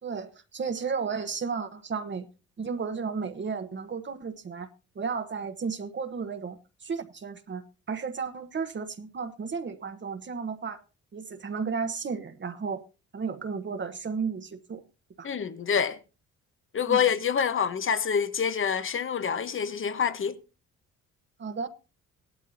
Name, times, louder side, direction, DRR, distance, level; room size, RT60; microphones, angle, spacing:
voice 1, 0.0-2.3 2.6-4.7 4.9-10.8 11.1-12.8 13.1-14.8 15.2-15.3 16.9-17.1 21.4-21.7, right 5 dB, 40° right, 1.2 m, -33 dB
voice 2, 15.2-16.0 16.7-20.4, left 7 dB, 40° left, 1.2 m, -26 dB
17.0 x 12.0 x 2.8 m
cardioid pair, 90°, 30 cm